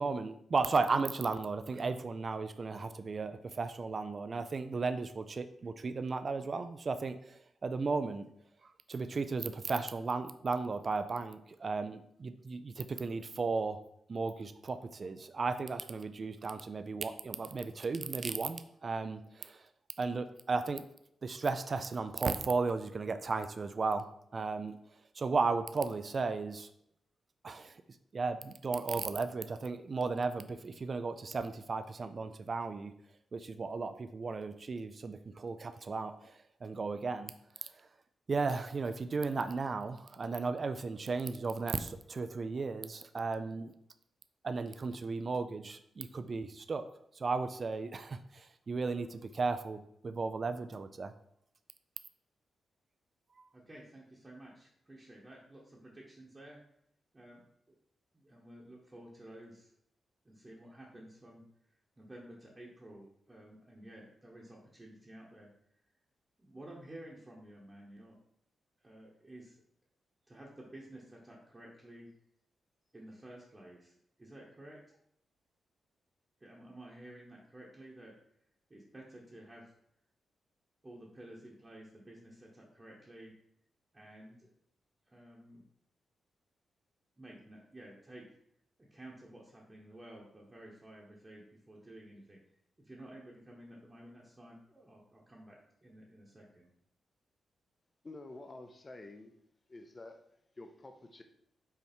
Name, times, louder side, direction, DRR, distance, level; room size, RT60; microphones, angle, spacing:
voice 1, 0.0-8.3 8.9-13.8 14.1-19.6 20.0-20.8 21.2-24.0 24.3-24.8 25.2-26.7 27.4-27.7 28.1-32.9 33.3-37.3 37.6-37.7 38.3-43.7 44.4-46.8 47.2-51.1, right 4 dB, 35° right, 9 dB, 0.4 m, -35 dB
voice 2, 53.5-56.6 57.1-57.8 58.1-59.7 60.2-61.4 62.0-65.5 66.4-68.2 68.8-69.6 70.3-72.1 72.9-75.0 76.4-78.1 78.7-79.6 80.8-83.3 83.9-84.5 85.1-85.6 87.2-88.2 88.8-92.4 92.8-96.7, right 1 dB, 15° right, -5 dB, 1.1 m, -52 dB
voice 3, 98.0-99.3 99.7-100.2 100.6-101.2, left 2 dB, 25° left, 5 dB, 0.5 m, -49 dB
5.6 x 4.6 x 4.4 m, 0.72 s
wide cardioid pair, 145°, 0 cm